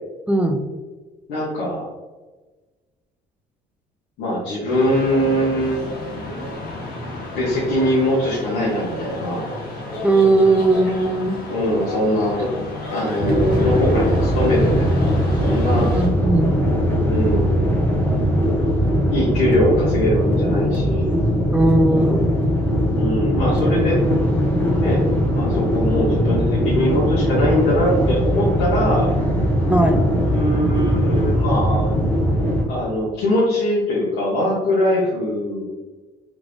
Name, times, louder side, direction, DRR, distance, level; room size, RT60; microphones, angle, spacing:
voice 1, 0.3-0.6 10.0-11.4 15.9-16.6 21.5-22.3 29.7-30.0, right 2 dB, 10° right, 6 dB, 0.4 m, -18 dB
voice 2, 1.3-1.9 4.2-5.8 7.3-9.5 11.5-15.9 17.1-17.7 19.1-21.1 22.9-24.0 24.8-25.0 25.3-29.1 30.2-31.9 32.7-35.6, left 1 dB, 90° left, -7 dB, 1.4 m, -22 dB
sound 1, 4.7-16.1, left 1 dB, 70° left, 1.5 m, -32 dB
sound 2, 13.2-32.6, equal, 10° left, 1.3 m, -20 dB
3.7 x 3.6 x 3.3 m, 1.2 s
cardioid pair, 110°, 17 cm